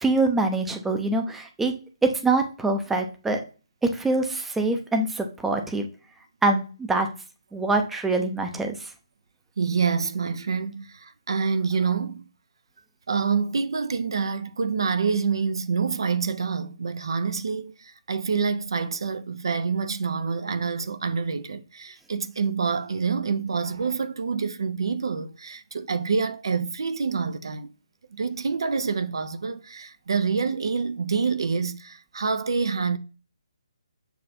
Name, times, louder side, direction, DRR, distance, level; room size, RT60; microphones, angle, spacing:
voice 1, 0.0-1.7 2.0-3.4 3.8-5.9 6.4-7.1 7.5-8.9, right 2 dB, 5° right, 0.5 m, -24 dB
voice 2, 9.6-12.3 13.1-27.7 28.1-33.0, right 5 dB, 55° right, 0.4 m, -27 dB
6.9 x 2.4 x 2.6 m
figure-of-eight pair, 140°, 3 cm